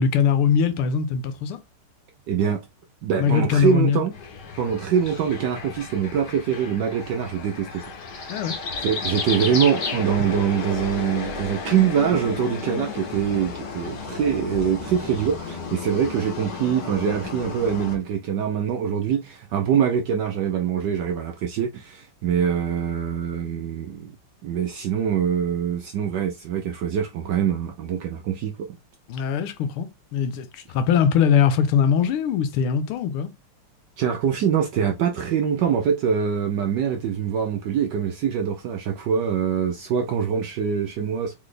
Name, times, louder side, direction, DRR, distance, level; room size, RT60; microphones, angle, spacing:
voice 1, 0.0-1.6 3.2-4.1 8.3-8.6 29.1-33.3, left 7 dB, 85° left, 1.6 m, -21 dB
voice 2, 2.3-2.6 3.0-4.1 4.6-7.9 8.1-8.4 8.8-24.1 24.4-28.7 34.0-41.3, right 8 dB, 75° right, 1.0 m, -24 dB
sound 1, 4.1-18.0, left 5 dB, 60° left, 1.5 m, -33 dB
4.0 x 3.8 x 3.2 m
omnidirectional pair, 2.4 m